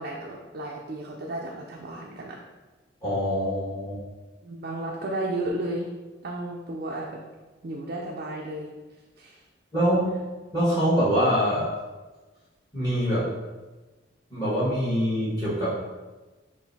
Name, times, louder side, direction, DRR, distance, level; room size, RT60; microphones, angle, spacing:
voice 1, 0.0-2.4 4.4-5.9 6.2-7.2 7.6-8.7 9.2-9.4, right 1 dB, 50° right, -2 dB, 0.4 m, -33 dB
voice 2, 3.0-4.0 9.7-10.2 10.5-11.7 12.7-13.3 14.3-15.7, equal, 20° left, -11 dB, 1.4 m, -24 dB
3.9 x 2.6 x 4.1 m, 1.2 s
head